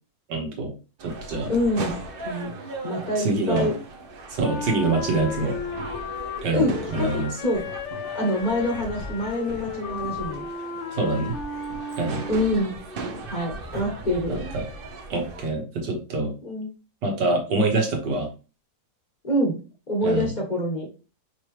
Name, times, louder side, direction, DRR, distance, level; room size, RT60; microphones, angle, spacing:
voice 1, 0.3-0.7 1.0-1.5 3.2-3.7 4.3-5.6 6.4-7.3 10.9-11.4 12.0-12.2 14.3-14.6 15.1-16.3 17.0-18.3 20.0-20.3, right 3 dB, 85° right, 1 dB, 1.8 m, -25 dB
sound 1, 1.0-15.5, right 3 dB, 55° right, 0.6 m, -37 dB
voice 2, 1.5-2.0 2.2-2.5 2.8-3.8 6.5-7.6 8.1-10.5 12.3-12.7 13.3-14.5 16.4-16.7 19.2-19.6 19.9-20.9, left 1 dB, 35° left, -1 dB, 0.9 m, -26 dB
Wind instrument woodwind instrument, 4.4-12.6, left 5 dB, 65° left, 0.7 m, -34 dB
Drawer open or close, 9.5-10.3 11.0-14.4 14.7-14.8, right 2 dB, 30° right, 1.3 m, -44 dB
5.3 x 3.0 x 3.2 m, 0.33 s
omnidirectional pair, 1.8 m